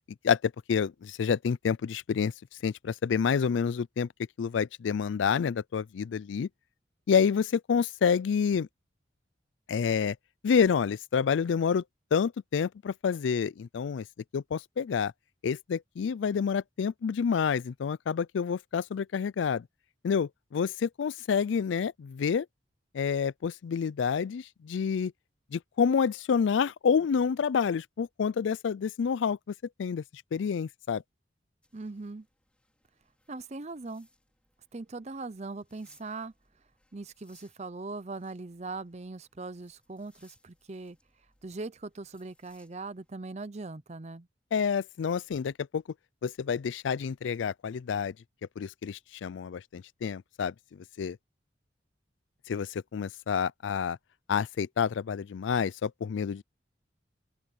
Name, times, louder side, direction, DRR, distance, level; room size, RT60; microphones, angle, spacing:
voice 1, 0.2-2.3 2.6-4.1 4.4-6.5 7.1-8.7 9.7-10.2 10.4-11.8 12.1-14.0 14.3-15.1 15.4-19.6 20.0-22.5 22.9-25.1 25.5-30.0 30.3-31.0 44.5-45.8 46.2-48.1 48.6-50.5 51.0-51.2 52.5-54.0 54.3-56.4, left 6 dB, 85° left, 0.4 m, -28 dB
sound 1, 31.6-43.2, left 2 dB, 5° left, 4.5 m, -67 dB
voice 2, 31.7-32.3 33.3-34.1 34.7-36.3 36.9-41.0 41.4-44.3, right 3 dB, 35° right, 0.6 m, -40 dB
open air
head